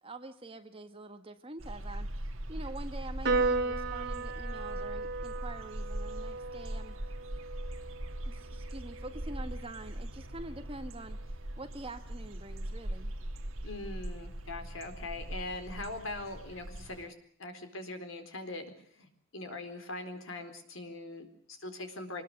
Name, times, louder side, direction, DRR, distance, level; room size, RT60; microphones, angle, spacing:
voice 1, 0.0-2.1 2.5-7.0 8.2-11.2 11.6-13.1, right 2 dB, 25° right, 8 dB, 1.7 m, -45 dB
sound 1, 1.6-17.1, right 1 dB, 70° right, 1.9 m, -40 dB
Piano, 3.2-9.9, right 3 dB, 50° right, 2.9 m, -36 dB
voice 2, 13.6-17.1 17.4-18.7 19.0-22.2, left 2 dB, 65° left, 7 dB, 4.2 m, -41 dB
24.5 x 20.5 x 6.8 m, 0.62 s
head